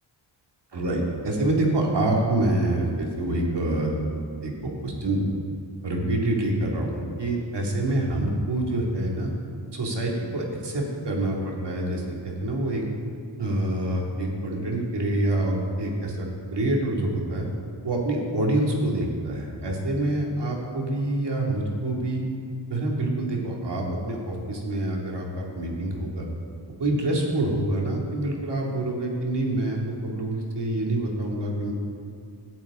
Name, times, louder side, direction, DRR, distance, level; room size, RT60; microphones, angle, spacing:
voice 1, 0.7-3.9 4.4-5.3 5.8-9.3 9.7-12.8 13.4-17.5 17.8-22.2 22.7-26.3 26.8-31.7, right 1 dB, 65° right, -1 dB, 2.4 m, -26 dB
17.0 x 8.9 x 3.7 m, 2.3 s
cardioid pair, 55°, 45 cm